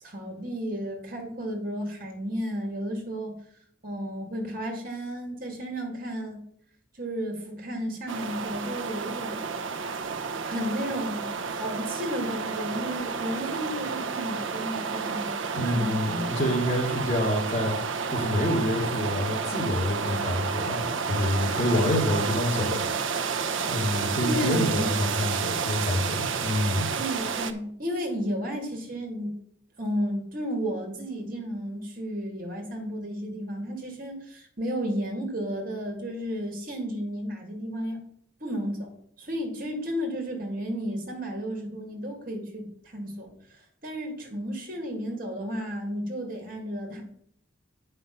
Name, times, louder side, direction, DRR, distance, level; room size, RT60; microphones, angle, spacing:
voice 1, 0.0-3.4 3.8-6.4 7.0-9.4 10.4-15.3 15.6-15.9 24.2-24.9 27.0-29.3 29.8-38.0 38.4-38.9 39.2-47.0, equal, 45° right, 2 dB, 2.5 m, -33 dB
sound 1, 8.1-27.5, right 5 dB, 75° right, 0.8 m, -30 dB
voice 2, 15.5-17.7 18.1-22.8 23.7-26.9, left 1 dB, 35° left, -3 dB, 2.4 m, -27 dB
8.3 x 5.7 x 5.5 m, 0.66 s
head